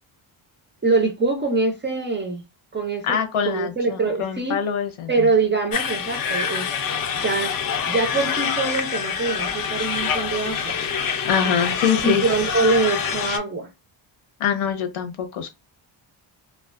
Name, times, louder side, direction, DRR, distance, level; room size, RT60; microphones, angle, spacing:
voice 1, 0.8-2.4 2.7-3.2 3.4-4.6 5.1-6.7 7.2-7.6 7.9-10.8 12.0-13.7, right 3 dB, 25° right, 0.4 m, -23 dB
voice 2, 3.0-5.3 11.2-12.3 14.4-15.5, left 7 dB, 85° left, 0.8 m, -24 dB
sound 1, 5.7-13.4, left 7 dB, 45° left, 0.5 m, -26 dB
2.4 x 2.2 x 2.4 m
cardioid pair, 125°, 48 cm